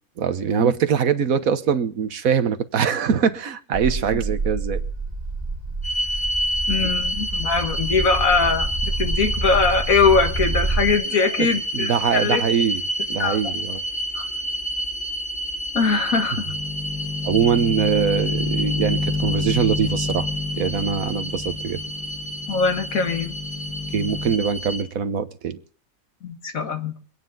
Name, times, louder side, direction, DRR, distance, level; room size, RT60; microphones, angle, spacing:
voice 1, 0.2-4.8 6.8-6.9 11.4-12.8 13.1-13.8 17.2-20.3 20.6-21.8 23.9-25.6, right 7 dB, 90° right, 11 dB, 1.5 m, -23 dB
sound 1, 3.7-10.9, right 2 dB, 30° right, 2.6 m, -28 dB
sound 2, 5.8-24.8, equal, 40° left, 1.6 m, -29 dB
voice 2, 6.7-12.4 13.2-13.4 14.1-14.3 15.7-16.5 22.5-23.3 26.2-26.9, left 4 dB, 80° left, 6 dB, 2.1 m, -21 dB
sound 3, 16.4-24.4, left 3 dB, 10° left, 1.5 m, -29 dB
24.5 x 9.7 x 3.8 m, 0.43 s
omnidirectional pair, 1.4 m